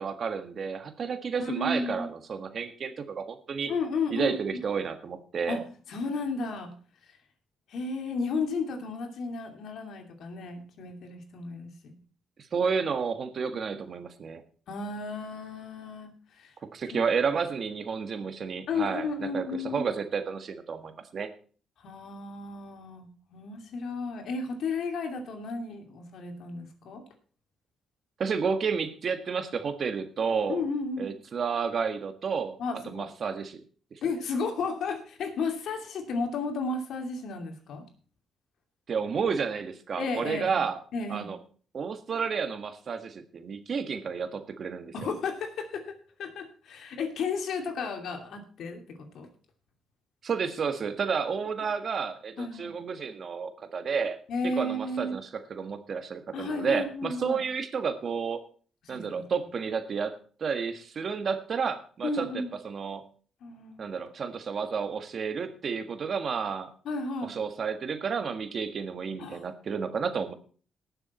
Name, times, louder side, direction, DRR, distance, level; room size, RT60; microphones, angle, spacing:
voice 1, 0.0-3.7 4.1-5.6 12.5-14.4 16.7-21.3 28.2-30.6 31.0-32.6 32.8-33.6 33.9-34.0 38.9-40.8 41.1-41.4 41.7-45.1 50.2-54.2 54.4-58.4 58.9-60.1 60.4-62.3 62.6-63.0 63.8-66.7 67.3-70.3, right 6 dB, 50° right, 8 dB, 1.5 m, -31 dB
voice 2, 1.4-2.1 3.7-4.6 5.5-5.6 5.9-6.7 7.1-7.2 7.7-12.0 13.5-13.6 14.7-16.5 16.9-17.0 18.7-19.8 21.8-27.0 30.5-31.1 32.6-33.1 34.0-37.8 40.0-40.6 40.9-41.3 44.9-49.3 52.4-52.7 54.3-55.2 56.3-57.4 58.8-59.2 62.0-62.5 63.4-63.9 66.8-67.3 69.2-69.5, left 3 dB, 70° left, 4 dB, 2.6 m, -33 dB
19.0 x 6.8 x 4.3 m, 0.42 s
cardioid pair, 90°, 0 cm